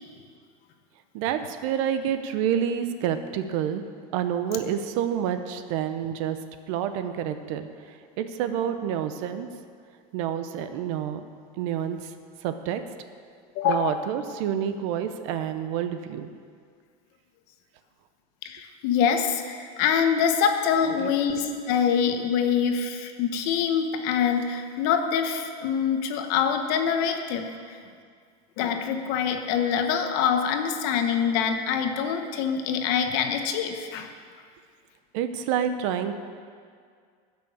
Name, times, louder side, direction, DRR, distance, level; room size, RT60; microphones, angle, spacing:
voice 1, 1.1-3.8 4.1-6.4 6.7-9.5 10.1-11.2 11.6-12.1 12.4-12.8 13.6-16.3 21.0-21.1 35.1-36.1, right 9 dB, 55° right, 9 dB, 0.8 m, -28 dB
voice 2, 13.5-14.0 18.4-27.5 28.6-34.1, left 7 dB, 50° left, 6 dB, 1.1 m, -25 dB
16.0 x 6.2 x 7.2 m, 2.1 s
supercardioid pair, 170°, 20 cm